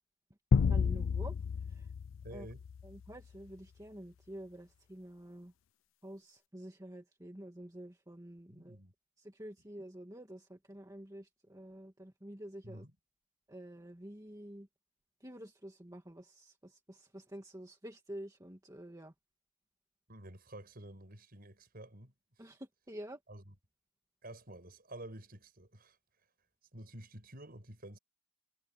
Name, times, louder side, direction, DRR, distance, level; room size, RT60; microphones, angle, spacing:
sound 1, 0.5-3.1, left 6 dB, 70° left, 0.4 m, -31 dB
voice 1, 0.7-1.4 1.7-1.9 2.3-2.5 2.8-5.5 6.0-8.8 9.2-12.8 13.5-14.7 15.2-19.1 22.4-23.2, right 1 dB, 15° right, 2.0 m, -49 dB
voice 2, 2.2-2.7 8.5-8.9 12.6-12.9 20.1-22.1 22.4-22.5 23.3-23.5 24.2-26.0 26.7-28.0, right 1 dB, 45° right, 6.9 m, -50 dB
head